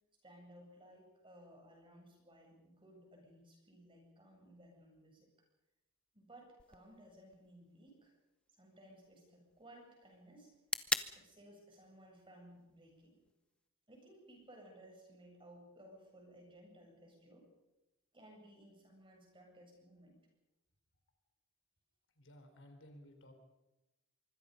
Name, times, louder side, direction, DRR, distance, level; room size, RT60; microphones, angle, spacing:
voice 1, 0.2-5.3 6.1-8.1 8.5-10.5 11.1-13.1 13.9-17.5 18.1-20.1, right 1 dB, 25° right, 1 dB, 7.9 m, -59 dB
sound 1, 6.6-14.6, left 2 dB, 5° left, 0.8 m, -46 dB
voice 2, 22.1-23.3, left 1 dB, 60° left, 5 dB, 4.3 m, -57 dB
25.0 x 24.5 x 5.4 m, 0.98 s
head